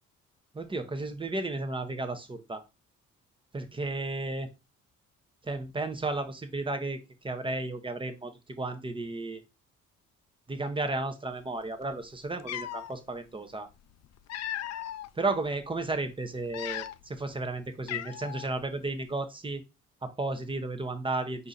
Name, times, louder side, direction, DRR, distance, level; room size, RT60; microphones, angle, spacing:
voice 1, 0.5-2.6 3.5-4.5 5.4-7.0 7.2-9.4 10.5-13.7 15.2-19.6 20.0-21.5, right 2 dB, 15° right, 7 dB, 0.8 m, -33 dB
Cat, 11.9-12.0 12.4-12.9 13.9-15.1 15.6-15.8 16.4-17.2 17.4-17.5 17.9-18.5, left 12 dB, 60° left, 0.4 m, -37 dB
4.7 x 2.8 x 3.9 m, 0.26 s
cardioid pair, 90°, 30 cm